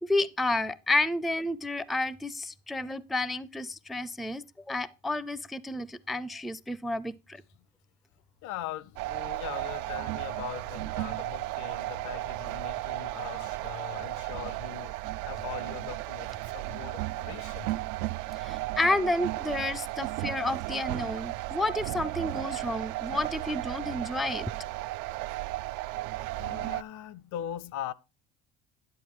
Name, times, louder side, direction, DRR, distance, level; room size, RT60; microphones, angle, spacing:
voice 1, 0.0-7.4 18.3-24.5, left 2 dB, ahead, 0.4 m, -31 dB
voice 2, 8.4-17.7 26.4-27.9, left 11 dB, 70° left, 0.7 m, -41 dB
sound 1, 9.0-26.8, right 18 dB, 75° right, 0.5 m, -34 dB
11.0 x 7.8 x 3.1 m
cardioid pair, 110°, 31 cm